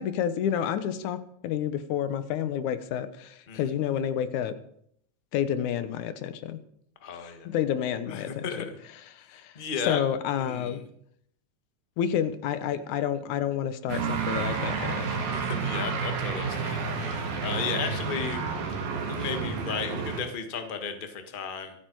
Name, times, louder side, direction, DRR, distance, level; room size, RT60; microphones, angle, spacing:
voice 1, 0.0-4.6 5.3-6.6 7.1-10.8 12.0-15.2, left 9 dB, 85° left, 12 dB, 2.4 m, -30 dB
voice 2, 7.0-7.5 8.1-8.8 9.5-10.0 10.4-10.8 15.3-18.5 19.1-21.7, left 6 dB, 30° left, 6 dB, 1.0 m, -34 dB
sound 1, 13.9-20.2, right 5 dB, 85° right, 3.5 m, -30 dB
25.5 x 9.2 x 4.7 m, 0.69 s
omnidirectional pair, 3.4 m